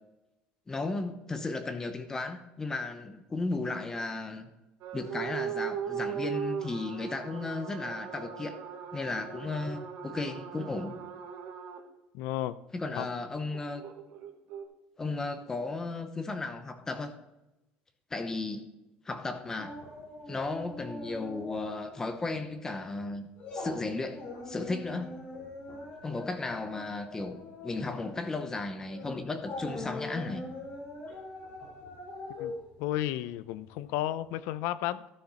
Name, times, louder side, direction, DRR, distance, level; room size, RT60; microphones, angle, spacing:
voice 1, 0.7-4.5 4.9-8.6 8.9-11.0 12.7-13.8 15.0-17.1 18.1-18.7 19.0-19.8 20.3-25.2 26.0-30.4, left 3 dB, 15° left, 8 dB, 0.8 m, -35 dB
sound 1, 4.8-11.8 13.5-14.6, right 8 dB, 70° right, 1.4 m, -38 dB
voice 2, 12.1-12.5 13.0-13.1 32.4-32.5 32.8-35.1, left 13 dB, 85° left, 16 dB, 0.5 m, -33 dB
sound 2, 19.6-22.0 22.3-22.5 22.9-33.9 34.2-34.3, left 2 dB, 40° left, 3.5 m, -42 dB
13.0 x 6.4 x 4.1 m, 0.95 s
cardioid pair, 150°, 3 cm